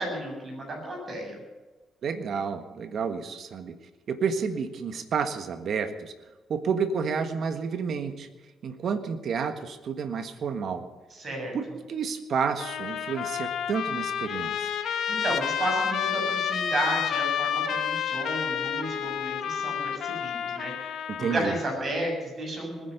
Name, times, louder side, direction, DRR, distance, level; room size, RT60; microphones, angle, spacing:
voice 1, 0.0-1.4 11.2-11.6 14.8-22.9, right 1 dB, 40° right, 1 dB, 7.4 m, -33 dB
voice 2, 2.0-3.7 4.1-6.1 6.5-8.3 8.6-10.8 11.5-14.7 21.1-21.6, right 6 dB, 60° right, 9 dB, 1.5 m, -30 dB
Trumpet, 12.6-21.7, left 8 dB, 70° left, 1.6 m, -30 dB
20.0 x 10.5 x 6.8 m, 1.2 s
cardioid pair, 90°, 0 cm